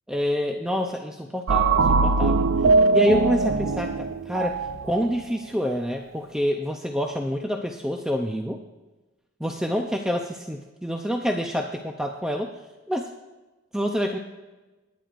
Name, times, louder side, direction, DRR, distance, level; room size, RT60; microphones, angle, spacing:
voice 1, 0.1-2.5 2.9-4.6 4.8-8.6 9.4-12.5 12.9-13.1 13.7-14.2, equal, 5° right, 2 dB, 0.5 m, -27 dB
sound 1, 1.5-5.1, right 3 dB, 70° right, 0.5 m, -21 dB
25.5 x 10.5 x 2.5 m, 1.2 s
head